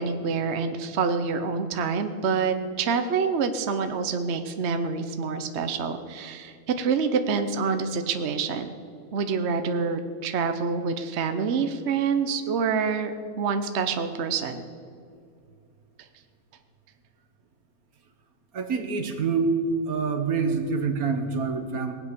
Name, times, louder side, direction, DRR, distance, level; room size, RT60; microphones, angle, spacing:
voice 1, 0.0-8.7 9.1-14.6, right 5 dB, 55° right, 8 dB, 1.0 m, -27 dB
voice 2, 18.5-19.5 19.9-21.9, right 5 dB, 75° right, 7 dB, 1.8 m, -26 dB
19.0 x 8.5 x 6.8 m, 2.3 s
omnidirectional pair, 1.6 m